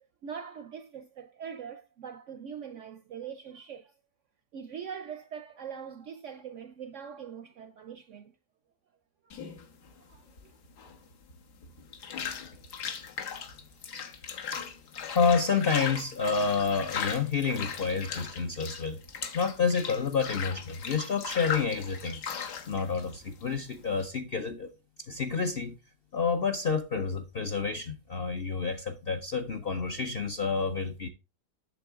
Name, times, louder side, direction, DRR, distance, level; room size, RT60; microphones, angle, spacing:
voice 1, 0.2-3.9 4.5-8.3 9.2-9.4 10.0-10.5, right 7 dB, 65° right, 0.7 m, -42 dB
sound 1, 9.3-24.1, left 7 dB, 70° left, 1.8 m, -38 dB
voice 2, 15.0-19.0 19.3-22.2 22.7-24.7 25.0-25.8 26.1-31.1, left 5 dB, 55° left, 0.6 m, -29 dB
8.3 x 6.9 x 3.5 m
omnidirectional pair, 1.8 m